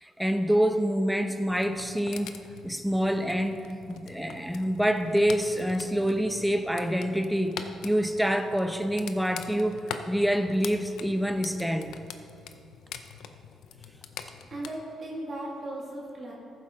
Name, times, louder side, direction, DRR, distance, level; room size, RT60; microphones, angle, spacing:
voice 1, 0.0-2.3 2.6-7.6 7.8-12.0, equal, 5° right, 7 dB, 0.7 m, -26 dB
sound 1, 1.5-14.7, left 7 dB, 80° left, 0.6 m, -44 dB
voice 2, 14.5-16.3, right 1 dB, 45° right, -4 dB, 2.2 m, -37 dB
14.0 x 7.8 x 3.8 m, 2.5 s
cardioid pair, 90°, 0 cm